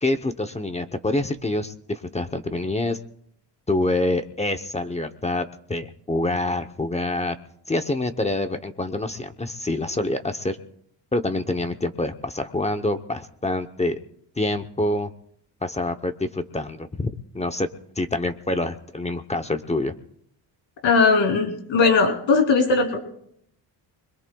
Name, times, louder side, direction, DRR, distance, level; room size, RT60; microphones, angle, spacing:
voice 1, 0.0-3.0 3.7-7.4 7.7-10.6 11.1-14.0 14.4-15.1 15.6-17.7 18.0-19.9, left 2 dB, 15° left, 7 dB, 0.7 m, -26 dB
voice 2, 20.8-23.0, left 4 dB, 80° left, 4 dB, 3.2 m, -19 dB
25.5 x 21.5 x 2.3 m, 0.70 s
cardioid pair, 140°, 45 cm